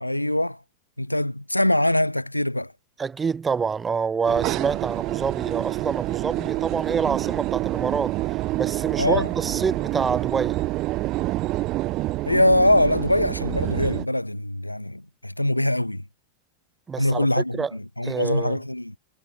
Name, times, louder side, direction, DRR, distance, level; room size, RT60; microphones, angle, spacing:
voice 1, 0.0-0.6 1.0-2.7 9.0-9.3 12.3-16.0 17.0-18.9, left 1 dB, 85° left, 0.6 m, -23 dB
voice 2, 3.0-8.2 8.6-10.6 16.9-17.3 17.5-17.7 18.0-18.6, right 5 dB, 15° right, 0.8 m, -27 dB
sound 1, 4.3-14.1, right 18 dB, 40° right, 0.3 m, -27 dB
figure-of-eight pair, 90°, 0 cm